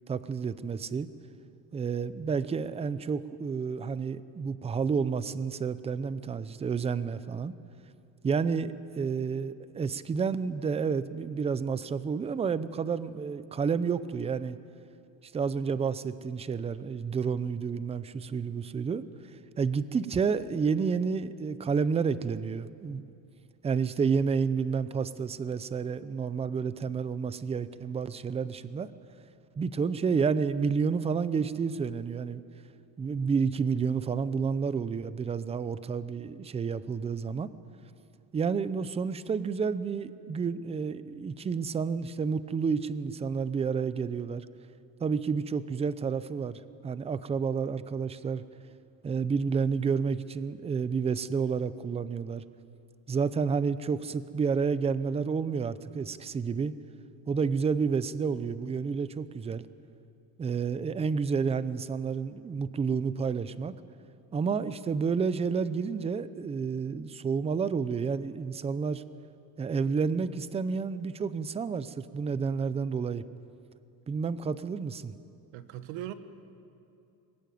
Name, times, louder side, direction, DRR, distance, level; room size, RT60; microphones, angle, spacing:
voice 1, 0.1-1.1 1.7-7.5 8.2-14.6 15.2-19.0 19.6-23.0 23.6-28.9 29.6-32.4 33.0-37.5 38.3-44.5 45.0-48.4 49.0-52.4 53.1-56.7 57.3-59.6 60.4-63.7 64.3-69.0 69.6-73.2 74.1-75.1, right 5 dB, 15° right, 15 dB, 0.5 m, -30 dB
voice 2, 75.5-76.1, right 13 dB, 90° right, 11 dB, 1.6 m, -38 dB
24.0 x 19.5 x 9.3 m, 2.6 s
cardioid pair, 160°, 44 cm